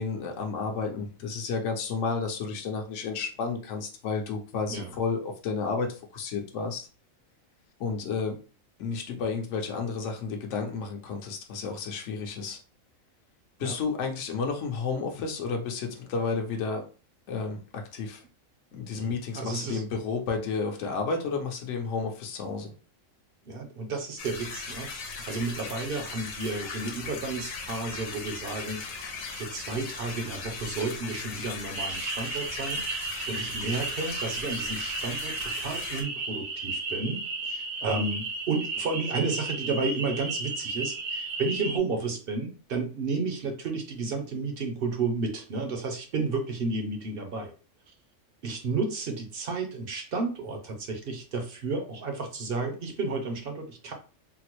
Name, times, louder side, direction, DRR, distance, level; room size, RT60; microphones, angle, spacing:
voice 1, 0.0-6.9 7.8-8.4 8.8-12.6 13.6-16.8 17.3-18.2 18.7-22.7, left 5 dB, 65° left, 2 dB, 1.0 m, -31 dB
voice 2, 18.9-19.8 23.5-47.5 48.4-53.9, right 3 dB, 55° right, 4 dB, 0.7 m, -32 dB
sound 1, 24.2-36.0, left 4 dB, 80° left, 1.2 m, -38 dB
sound 2, 31.7-41.8, right 3 dB, 75° right, 1.1 m, -34 dB
3.8 x 2.0 x 2.9 m, 0.36 s
omnidirectional pair, 1.4 m